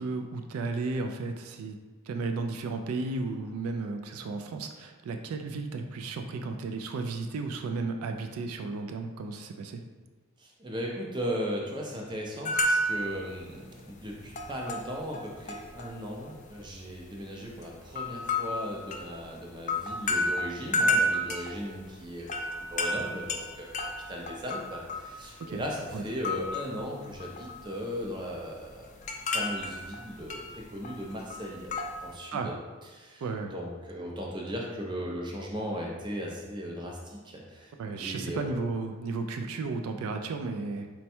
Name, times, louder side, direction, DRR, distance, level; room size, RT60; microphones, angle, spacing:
voice 1, 0.0-1.8 2.1-9.8 25.5-25.6 25.9-26.0 32.3-32.5 33.2-33.5 37.8-40.9, right 3 dB, 80° right, 5 dB, 0.3 m, -34 dB
voice 2, 10.4-23.8 24.1-28.9 29.3-31.7 32.0-32.6 32.9-33.2 33.5-37.7 38.0-38.6, equal, 20° right, -2 dB, 0.5 m, -37 dB
sound 1, 12.5-13.2 13.5-13.7 14.0-15.9 16.2-17.0 17.6-25.6 25.9-26.8 27.1-27.7 28.0-32.1, left 1 dB, 35° left, 0.3 m, -31 dB
4.3 x 2.2 x 4.3 m, 1.3 s
head